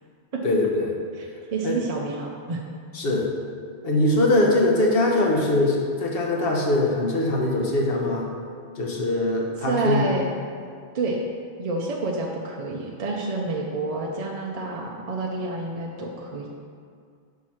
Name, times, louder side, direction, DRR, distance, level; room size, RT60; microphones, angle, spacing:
voice 1, 0.4-1.0 1.6-1.7 2.9-3.3 3.8-8.3 8.8-10.0, left 2 dB, 60° left, -1 dB, 1.1 m, -22 dB
voice 2, 1.1-2.6 9.6-10.3 10.9-11.2 11.6-16.5, right 3 dB, 45° right, -1 dB, 0.5 m, -28 dB
4.7 x 4.6 x 5.7 m, 2.2 s
omnidirectional pair, 1.1 m